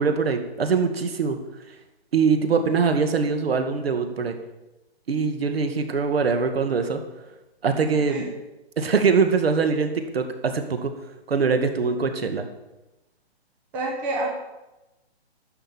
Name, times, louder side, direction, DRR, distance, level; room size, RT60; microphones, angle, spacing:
voice 1, 0.0-1.4 2.1-4.4 5.1-7.0 7.6-8.2 8.8-10.9 11.3-12.5, right 5 dB, 65° right, 7 dB, 2.2 m, -23 dB
voice 2, 13.7-14.3, right 2 dB, 5° right, -3 dB, 0.6 m, -27 dB
11.5 x 6.6 x 8.8 m, 1.0 s
hypercardioid pair, 170°, 32 cm